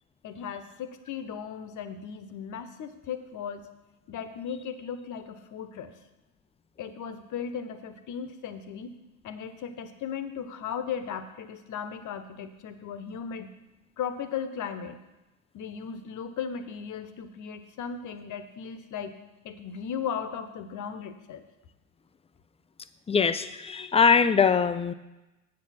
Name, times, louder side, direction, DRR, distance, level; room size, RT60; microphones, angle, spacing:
voice 1, 0.2-3.7 4.1-5.9 6.8-8.9 9.2-13.5 14.0-15.0 15.5-19.1 19.4-21.5, left 7 dB, 45° left, 11 dB, 1.1 m, -36 dB
voice 2, 23.1-24.9, left 6 dB, 15° left, 13 dB, 0.5 m, -22 dB
8.5 x 7.5 x 5.8 m, 1.0 s
hypercardioid pair, 65°, 44 cm